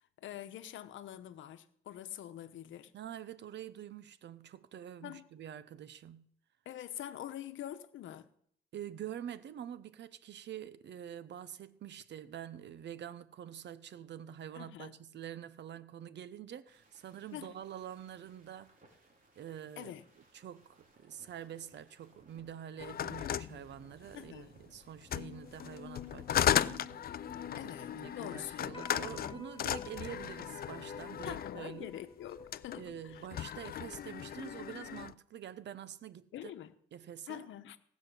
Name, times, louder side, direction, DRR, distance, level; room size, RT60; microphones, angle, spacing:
voice 1, 0.2-2.9 5.0-5.2 6.6-8.3 14.5-14.9 17.3-17.5 19.8-20.0 24.1-24.5 27.6-28.8 31.2-33.3 36.3-36.7 37.3-37.8, left 11 dB, 75° left, 1.0 m, -45 dB
voice 2, 2.9-6.2 8.7-18.7 19.4-19.9 20.3-27.0 27.6-31.9 32.8-36.5 36.9-37.5, right 10 dB, 60° right, 0.9 m, -46 dB
sound 1, 16.7-26.6, right 2 dB, 45° right, 4.0 m, -65 dB
sound 2, 22.8-24.4 25.0-31.7 32.4-32.8 33.1-35.1, left 10 dB, 50° left, 0.5 m, -36 dB
sound 3, 25.1-33.7, left 5 dB, 25° left, 1.7 m, -50 dB
18.0 x 6.3 x 7.0 m
cardioid pair, 90°, 20 cm